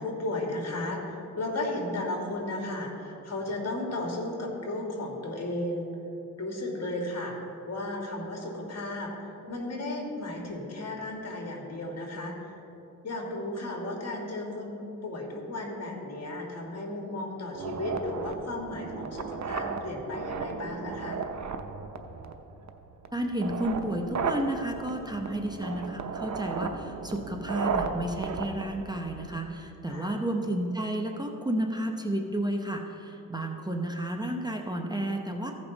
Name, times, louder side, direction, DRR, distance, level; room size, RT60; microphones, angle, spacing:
voice 1, 0.0-5.9 6.4-7.4 7.7-12.5 13.0-21.2 29.9-30.1, left 2 dB, 50° left, 0 dB, 2.1 m, -34 dB
sound 1, 17.5-29.5, right 5 dB, 55° right, 0.8 m, -35 dB
voice 2, 23.1-35.5, right 1 dB, 10° right, 2 dB, 0.8 m, -32 dB
15.0 x 5.5 x 4.0 m, 2.9 s
cardioid pair, 65°, 34 cm